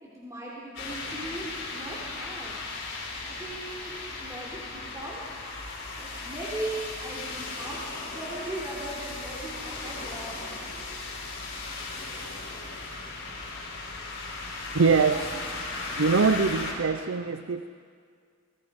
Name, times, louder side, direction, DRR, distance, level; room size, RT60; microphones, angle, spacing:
voice 1, 0.0-2.5 3.2-3.9 4.2-5.2 6.0-10.6 15.1-15.4, right 1 dB, 15° right, -6 dB, 3.5 m, -38 dB
sound 1, 0.8-16.7, left 3 dB, 60° left, 5.6 m, -37 dB
voice 2, 14.7-15.2 16.0-17.7, right 4 dB, 80° right, 11 dB, 0.6 m, -23 dB
28.0 x 21.5 x 5.2 m, 2.2 s
head